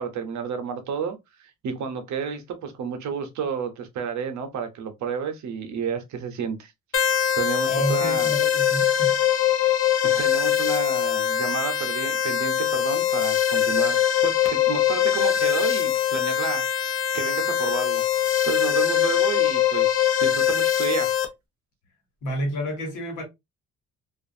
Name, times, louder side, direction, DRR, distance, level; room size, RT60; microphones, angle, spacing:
voice 1, 0.0-6.7 7.4-8.3 10.0-18.0 18.4-21.2, right 6 dB, 70° right, 0.8 m, -31 dB
sound 1, 6.9-21.3, left 10 dB, 45° left, 0.7 m, -22 dB
voice 2, 7.6-9.2 22.2-23.2, equal, 85° left, 1.4 m, -29 dB
2.5 x 2.4 x 2.5 m
cardioid pair, 90°, 30 cm